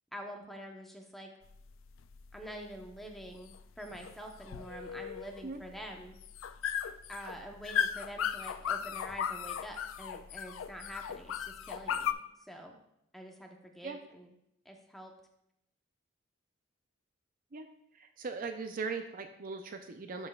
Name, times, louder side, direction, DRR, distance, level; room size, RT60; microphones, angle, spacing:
voice 1, 0.1-1.3 2.3-6.2 7.1-12.2 12.5-12.8 13.1-14.3 14.6-15.1, equal, ahead, 2 dB, 0.8 m, -46 dB
sound 1, 1.4-12.1, left 8 dB, 75° left, 0.4 m, -37 dB
voice 2, 17.9-20.3, right 4 dB, 45° right, 6 dB, 0.5 m, -39 dB
12.0 x 5.4 x 2.3 m, 0.79 s
head